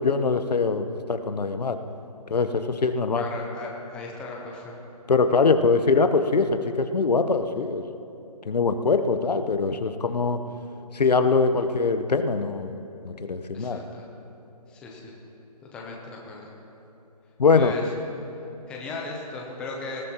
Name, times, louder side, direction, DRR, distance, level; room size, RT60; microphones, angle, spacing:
voice 1, 0.0-1.8 2.3-3.2 5.1-7.8 8.5-10.4 10.9-12.8 13.0-13.8 17.4-17.7, left 4 dB, 85° left, 8 dB, 0.9 m, -22 dB
voice 2, 3.2-4.7 13.5-14.1 14.7-15.1 15.7-16.5 17.5-17.8 18.7-20.0, left 3 dB, 5° left, -1 dB, 0.6 m, -37 dB
19.5 x 15.0 x 2.9 m, 2.9 s
hypercardioid pair, 160°, 20 cm